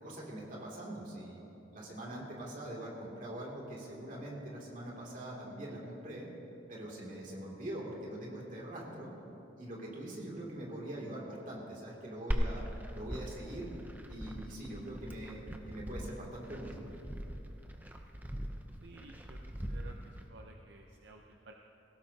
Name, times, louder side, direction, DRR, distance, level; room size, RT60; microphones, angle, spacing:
voice 1, 0.0-1.4 1.7-6.3 6.7-9.1 9.6-12.6 12.9-13.7 14.1-16.8, right 1 dB, 45° right, -4 dB, 2.7 m, -43 dB
Glass, 12.3-20.3, equal, 10° right, 0.7 m, -40 dB
voice 2, 18.8-19.4 19.7-21.5, right 3 dB, 70° right, 2 dB, 0.7 m, -54 dB
18.5 x 16.5 x 2.8 m, 3.0 s
head